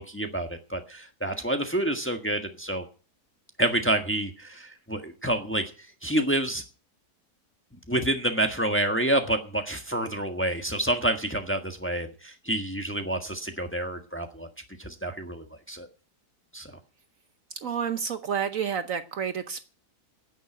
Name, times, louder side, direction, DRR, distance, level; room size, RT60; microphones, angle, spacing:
voice 1, 0.0-2.8 3.6-5.7 6.0-6.6 7.9-14.5 14.8-15.9 16.5-16.7, right 1 dB, 10° left, 5 dB, 1.3 m, -28 dB
voice 2, 17.6-19.7, right 7 dB, 60° right, 10 dB, 1.1 m, -30 dB
10.5 x 9.1 x 8.9 m, 0.38 s
omnidirectional pair, 1.7 m